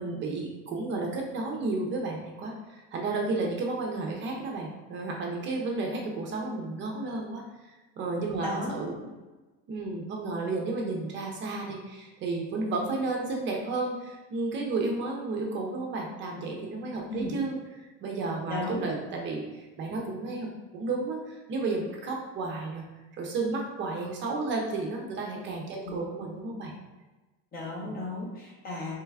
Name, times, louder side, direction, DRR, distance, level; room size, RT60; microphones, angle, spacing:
voice 1, 0.0-8.9 9.7-17.6 18.0-22.8 23.2-26.7 27.8-27.9, right 3 dB, 40° right, 0 dB, 0.5 m, -32 dB
voice 2, 8.4-9.1 17.1-17.4 18.5-18.8 25.8-26.0 27.5-28.9, left 2 dB, 30° left, -3 dB, 0.9 m, -35 dB
4.4 x 3.2 x 2.3 m, 1.2 s
cardioid pair, 160°, 30 cm